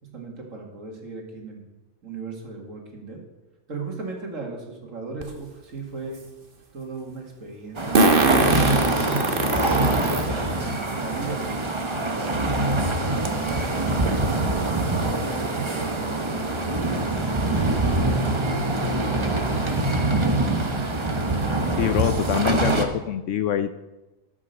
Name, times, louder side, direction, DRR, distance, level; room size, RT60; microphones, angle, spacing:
voice 1, 0.0-1.6 2.0-3.2 3.7-6.2 6.7-9.0 9.5-12.5 13.0-14.4 14.9-16.8 17.4-18.8, right 4 dB, 65° right, 0 dB, 2.4 m, -37 dB
Fart, 5.2-5.3 7.9-10.2 10.9-11.0 12.3-12.4 12.7-12.8 13.2-13.5, right 2 dB, 40° right, 1.3 m, -21 dB
sound 1, 7.8-22.8, right 2 dB, 25° right, 0.9 m, -24 dB
voice 2, 21.7-23.7, left 9 dB, 70° left, 11 dB, 0.8 m, -25 dB
13.5 x 6.2 x 6.6 m, 1.1 s
omnidirectional pair, 1.5 m